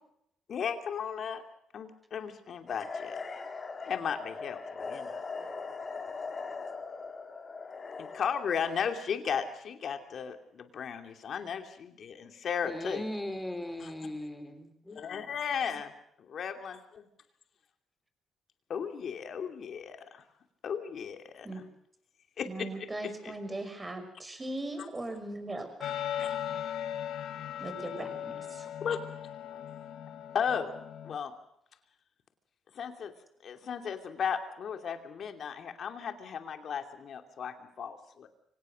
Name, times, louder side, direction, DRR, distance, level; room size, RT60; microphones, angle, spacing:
voice 1, 0.5-1.4 1.7-3.2 3.8-5.2 8.0-13.0 13.8-13.9 14.9-15.9 16.2-16.8 18.7-20.2 20.6-21.7 22.4-23.3 24.8-24.9 26.2-26.3 28.8-29.0 30.3-30.7 31.0-31.3 32.7-33.1 33.4-38.3, left 7 dB, 60° left, 6 dB, 2.7 m, -35 dB
sound 1, 2.7-8.9, left 4 dB, 35° left, 3.9 m, -40 dB
voice 2, 12.6-15.0, left 1 dB, 10° left, 8 dB, 4.4 m, -38 dB
voice 3, 22.4-25.9 27.6-28.7, right 2 dB, 20° right, 7 dB, 5.6 m, -39 dB
sound 2, 25.8-31.2, left 10 dB, 75° left, 1.8 m, -38 dB
24.5 x 18.0 x 6.4 m, 0.74 s
cardioid pair, 90°, 0 cm